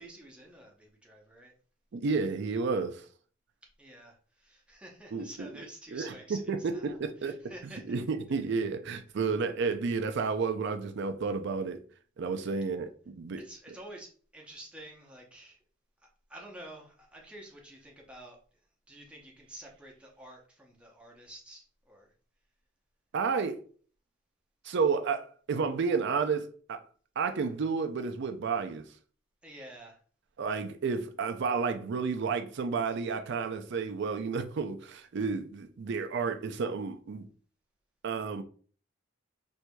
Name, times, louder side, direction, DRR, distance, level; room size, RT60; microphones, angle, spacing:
voice 1, 0.0-1.5 3.8-6.9 7.2-8.0 13.4-15.6 16.0-18.4 18.9-22.1 29.4-30.0, right 1 dB, 5° right, 0.7 m, -49 dB
voice 2, 1.9-3.0 5.1-5.5 5.9-7.4 7.9-11.8 12.2-13.4 23.1-23.6 24.6-26.8 27.2-28.8 30.4-37.3 38.0-38.4, right 5 dB, 60° right, 0.4 m, -31 dB
4.5 x 2.6 x 2.2 m
head